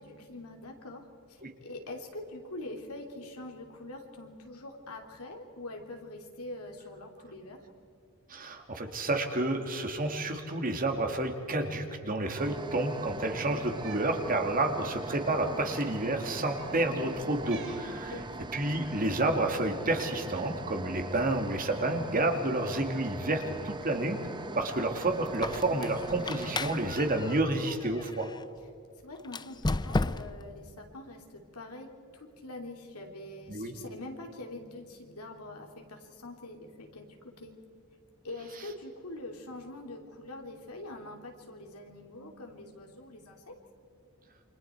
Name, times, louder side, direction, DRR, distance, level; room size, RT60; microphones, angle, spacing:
voice 1, 0.0-7.6 18.1-18.5 29.0-37.5 38.2-43.5, left 2 dB, 80° left, 2 dB, 3.1 m, -44 dB
voice 2, 8.3-18.2 18.5-24.2 24.5-28.3 33.5-33.7, right 2 dB, 40° right, 4 dB, 2.3 m, -30 dB
sound 1, 12.3-27.4, right 2 dB, 20° right, 0.7 m, -41 dB
Cat, 13.7-14.1 15.2-15.3 16.5-16.8 17.4-17.9 18.8-19.2, right 7 dB, 60° right, 3.5 m, -49 dB
Squeak, 25.3-28.4 29.2-30.5, left 2 dB, 20° left, 0.5 m, -34 dB
28.5 x 25.5 x 4.6 m, 2.4 s
head